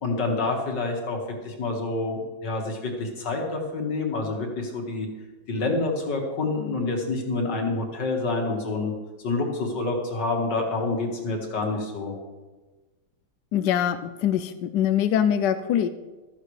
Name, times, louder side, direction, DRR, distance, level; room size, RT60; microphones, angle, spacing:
voice 1, 0.0-5.1 5.5-8.9 9.2-12.1, left 3 dB, 55° left, 1 dB, 2.4 m, -27 dB
voice 2, 13.5-15.9, left 9 dB, 75° left, 9 dB, 1.0 m, -23 dB
15.0 x 13.0 x 3.2 m, 1.2 s
omnidirectional pair, 2.3 m